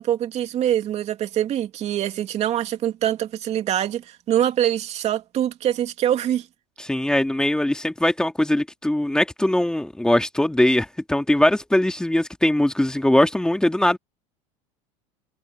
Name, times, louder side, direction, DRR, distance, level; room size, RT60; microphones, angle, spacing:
voice 1, 0.0-6.5, right 11 dB, 45° right, 2.5 m, -24 dB
voice 2, 6.8-14.0, left 1 dB, 5° left, 2.5 m, -21 dB
supercardioid pair, 115°, 16 cm